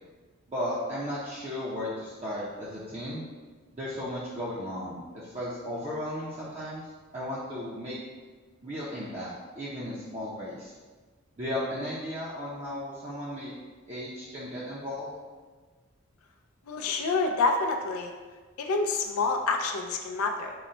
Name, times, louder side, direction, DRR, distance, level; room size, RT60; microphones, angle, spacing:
voice 1, 0.5-3.2 3.7-6.9 7.1-8.0 8.6-10.7 11.4-13.5 13.9-15.1, left 1 dB, 30° right, -8 dB, 0.5 m, -35 dB
voice 2, 16.7-18.1 18.6-20.5, left 3 dB, 90° left, 3 dB, 0.4 m, -27 dB
3.8 x 2.1 x 4.2 m, 1.4 s
head